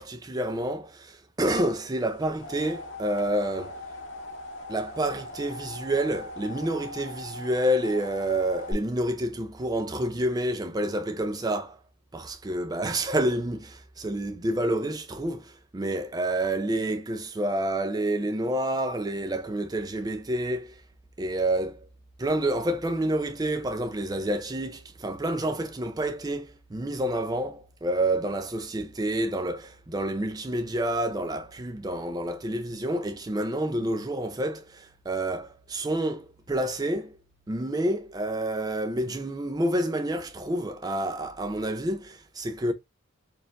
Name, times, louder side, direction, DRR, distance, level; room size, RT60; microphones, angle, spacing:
voice 1, 0.0-3.8 4.7-11.8 12.1-20.8 21.2-21.8 22.2-37.2 37.5-42.7, right 1 dB, 20° right, 0.4 m, -28 dB
sound 1, 2.0-8.7, left 1 dB, 70° left, 1.3 m, -40 dB
4.4 x 2.4 x 3.5 m
head